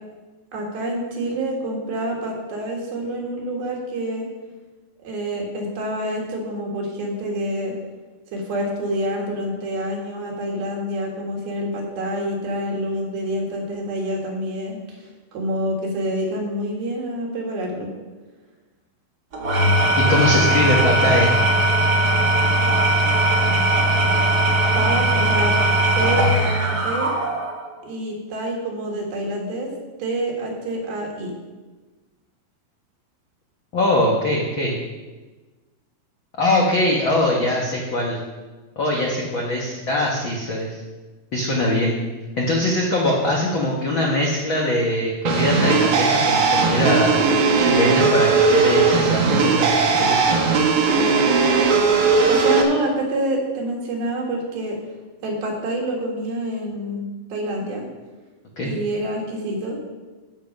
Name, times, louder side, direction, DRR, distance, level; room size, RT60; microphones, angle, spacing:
voice 1, 0.5-4.3 5.0-7.7 8.3-15.0 15.3-17.9 24.7-25.6 26.0-27.1 27.8-29.7 30.0-31.3 52.3-54.8 55.2-57.9 58.6-59.8, right 1 dB, 80° right, -1 dB, 3.8 m, -27 dB
Engine / Tools, 19.3-27.6, right 1 dB, 45° right, 1.3 m, -19 dB
voice 2, 20.0-21.3 33.7-34.8 36.4-38.2 38.8-40.8 41.3-42.0 42.4-47.2 47.6-50.4 58.6-58.7, left 1 dB, 75° left, -2 dB, 1.1 m, -22 dB
sound 1, 45.3-52.6, right 4 dB, 65° right, 2.2 m, -18 dB
14.5 x 5.6 x 5.3 m, 1.3 s
omnidirectional pair, 4.3 m